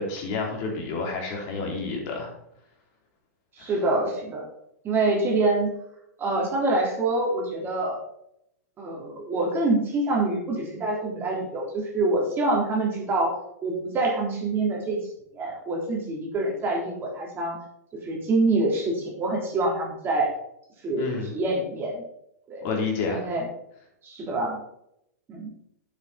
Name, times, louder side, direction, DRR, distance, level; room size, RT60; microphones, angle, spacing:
voice 1, 0.0-2.3 3.6-3.7 21.0-21.4 22.6-23.3, left 3 dB, 40° left, 0 dB, 3.4 m, -29 dB
voice 2, 3.6-4.5 4.8-5.7 6.2-8.0 8.8-13.3 13.6-15.0 15.3-17.6 18.0-20.3 20.8-22.0 22.5-22.6 23.1-23.5 24.0-24.6 25.3-25.5, right 2 dB, 25° right, -2 dB, 3.5 m, -26 dB
9.6 x 7.8 x 4.2 m, 0.75 s
figure-of-eight pair, 110°, 9 cm